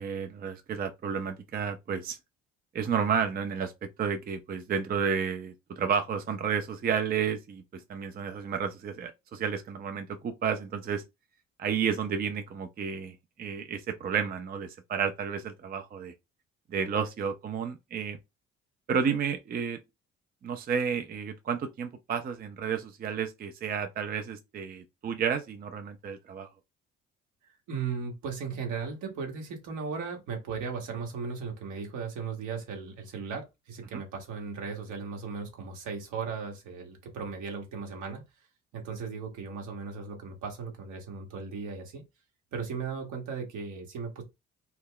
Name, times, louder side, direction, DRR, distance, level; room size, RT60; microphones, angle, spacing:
voice 1, 0.0-2.2 2.7-11.0 11.6-16.1 16.7-18.2 18.9-19.8 20.4-26.5 33.9-34.0, right 7 dB, 30° right, 0.4 m, -31 dB
voice 2, 27.7-38.2 38.7-42.0 42.5-44.2, right 5 dB, 70° right, 1.0 m, -37 dB
2.2 x 2.1 x 3.6 m
hypercardioid pair, 50°, 31 cm